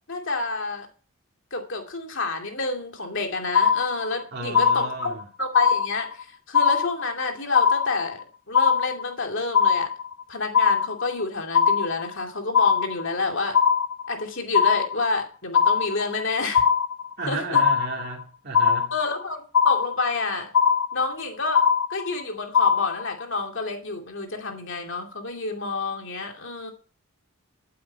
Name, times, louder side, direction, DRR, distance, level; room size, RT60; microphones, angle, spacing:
voice 1, 0.1-0.9 1.5-8.2 8.5-9.9 10.3-13.6 14.1-16.6 17.3-17.6 18.9-20.5 20.9-26.7, left 3 dB, 60° left, 2.6 m, -29 dB
sound 1, 3.5-4.2 4.5-5.2 5.5-6.2 6.5-7.2 7.5-8.2 8.5-9.2 9.5-10.2 10.5-11.2 11.5-12.2 12.5-13.2 13.5-14.2 14.5-15.2 15.5-16.2 16.5-17.2 17.5-18.2 18.5-19.2 19.5-20.2 20.5-21.2 21.5-22.2 22.5-23.2, left 7 dB, 75° left, 0.8 m, -21 dB
voice 2, 4.3-5.2 17.2-18.9, right 3 dB, 50° right, 2.3 m, -33 dB
14.5 x 8.7 x 4.6 m
head